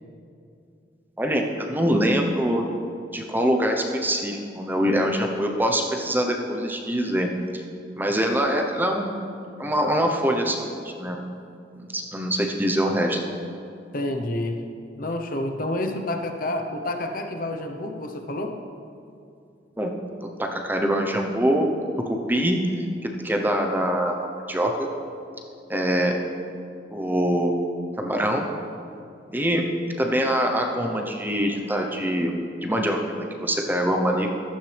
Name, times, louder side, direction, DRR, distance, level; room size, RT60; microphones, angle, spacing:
voice 1, 1.2-2.6 3.1-7.6 8.0-9.1 9.6-11.2 11.8-13.2 19.8-19.9 20.2-21.7 22.1-22.6 23.0-24.1 24.5-24.9 25.7-26.2 26.9-27.6 28.0-28.5 29.3-29.7 30.0-32.3 32.6-34.3, equal, 10° right, 2 dB, 0.8 m, -24 dB
voice 2, 13.9-14.7 15.0-18.6, left 1 dB, 50° left, 4 dB, 0.9 m, -29 dB
14.5 x 13.0 x 3.4 m, 2.5 s
head